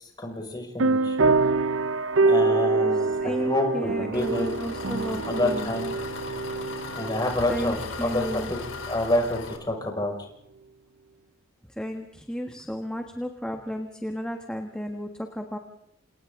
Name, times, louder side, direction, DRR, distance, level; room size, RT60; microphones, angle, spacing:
voice 1, 0.0-1.3 2.3-4.5 5.1-5.9 7.0-8.6 8.9-10.1, left 1 dB, 20° left, 2 dB, 5.8 m, -28 dB
sound 1, 0.8-8.9, right 3 dB, 70° right, 0.8 m, -25 dB
voice 2, 2.9-5.8 7.5-8.5 11.7-15.6, equal, 5° left, 3 dB, 1.5 m, -33 dB
Engine, 4.1-9.6, left 4 dB, 75° left, 3.6 m, -38 dB
29.5 x 28.0 x 3.8 m, 0.74 s
head